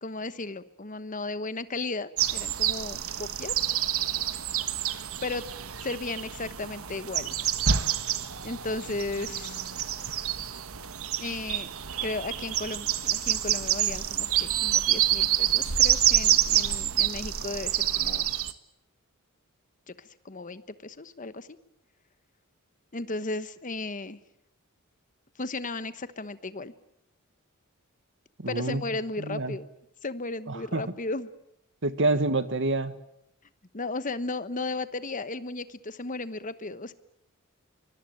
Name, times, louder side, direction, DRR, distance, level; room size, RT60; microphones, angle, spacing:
voice 1, 0.0-3.5 5.2-5.4 5.8-7.3 8.4-9.6 11.2-11.7 12.0-18.3 19.9-21.5 22.9-24.2 25.4-26.7 28.5-29.7 30.0-31.3 33.7-36.9, left 3 dB, 35° left, 13 dB, 1.2 m, -35 dB
sound 1, 2.2-18.5, right 10 dB, 75° right, 1.3 m, -27 dB
voice 2, 28.4-28.8 29.2-29.5 30.5-30.8 31.8-32.9, right 2 dB, 60° right, 12 dB, 1.6 m, -27 dB
24.5 x 21.0 x 9.2 m, 0.82 s
head